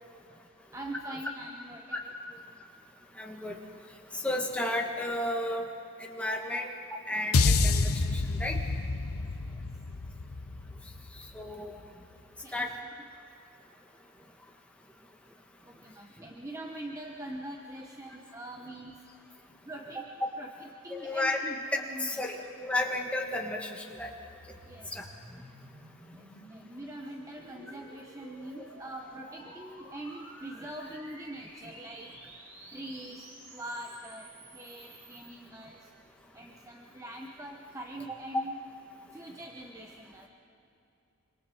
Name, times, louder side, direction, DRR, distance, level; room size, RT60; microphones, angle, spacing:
voice 1, 0.7-2.1 2.5-2.6 6.5-6.6 7.5-7.6 9.5-9.6 12.4-12.7 15.6-19.0 19.7-20.1 20.4-22.2 24.7-25.1 26.1-32.1 32.7-35.9 36.3-38.6 39.1-40.3, right 1 dB, 15° right, 1 dB, 1.0 m, -43 dB
voice 2, 3.2-3.6 4.1-5.7 6.0-6.7 7.1-8.6 11.3-11.8 12.5-12.7 20.9-21.4 21.7-24.1 24.9-25.0, left 1 dB, 5° left, 0 dB, 1.8 m, -32 dB
sound 1, 7.3-11.7, left 3 dB, 90° left, 0.8 m, -28 dB
sound 2, 24.0-35.3, right 1 dB, 70° right, 5.4 m, -52 dB
26.0 x 25.5 x 4.5 m, 2.8 s
head